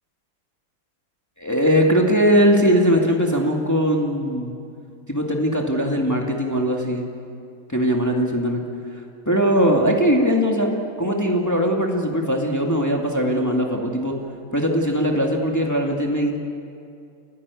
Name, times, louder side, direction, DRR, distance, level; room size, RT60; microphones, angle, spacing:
voice 1, 1.4-4.5 5.1-7.1 7.7-8.6 9.3-10.7 11.0-14.1 14.5-16.4, equal, 10° left, 0 dB, 2.1 m, -20 dB
29.5 x 15.5 x 8.5 m, 2.4 s
omnidirectional pair, 2.4 m